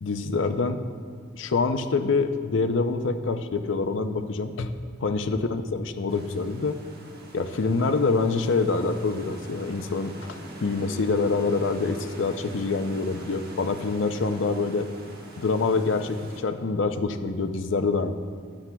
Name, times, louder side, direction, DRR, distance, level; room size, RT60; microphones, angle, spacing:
voice 1, 0.0-0.8 1.3-4.7 5.0-6.8 7.3-14.9 15.4-18.1, left 4 dB, 70° left, 8 dB, 0.5 m, -26 dB
sound 1, 6.1-16.4, right 1 dB, 55° right, 1.2 m, -44 dB
13.0 x 9.6 x 2.3 m, 2.1 s
head